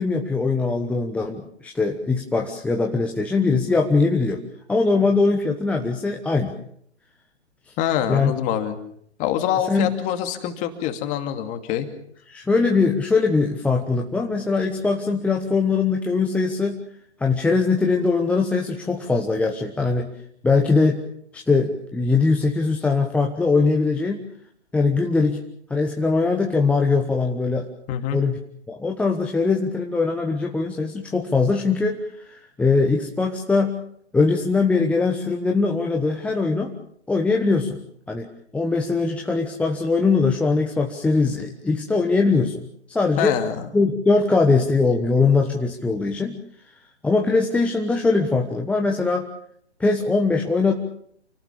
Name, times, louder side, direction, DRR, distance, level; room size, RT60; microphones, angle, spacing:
voice 1, 0.0-4.4 4.7-6.5 8.1-8.3 9.7-9.9 12.3-16.8 17.2-20.1 20.4-21.0 21.3-24.2 24.7-25.4 25.7-27.7 28.1-28.4 28.7-33.8 34.1-36.7 37.1-37.8 38.1-42.6 42.9-43.4 43.7-46.4 47.0-49.3 49.8-50.7, left 4 dB, 5° left, 1 dB, 1.1 m, -21 dB
voice 2, 7.8-8.8 9.2-11.9 27.9-28.2 43.2-43.7, left 10 dB, 20° left, 7 dB, 2.5 m, -25 dB
28.5 x 18.5 x 7.1 m, 0.67 s
figure-of-eight pair, 135°, 34 cm